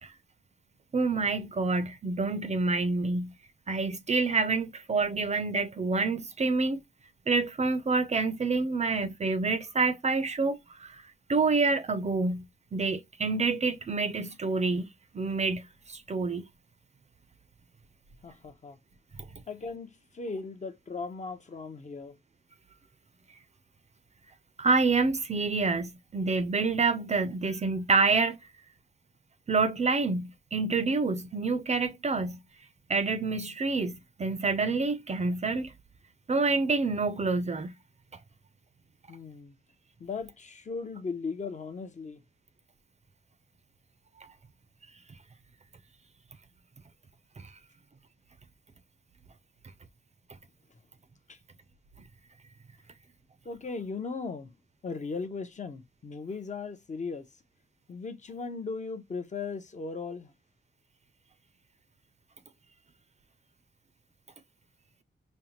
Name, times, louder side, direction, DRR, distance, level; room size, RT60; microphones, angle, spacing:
voice 1, 0.9-3.3 3.7-6.8 7.3-11.0 11.3-12.4 12.7-14.9 15.1-16.5 24.6-28.4 29.5-32.4 32.9-35.7 36.3-37.7, right 4 dB, 35° right, 0.5 m, -27 dB
voice 2, 18.2-18.8 19.5-22.2 39.1-39.6 40.0-42.2 51.3-51.4 53.4-54.5 54.8-57.3 57.9-60.3, left 4 dB, 35° left, 0.6 m, -37 dB
5.3 x 2.1 x 2.9 m
wide cardioid pair, 135°, 20 cm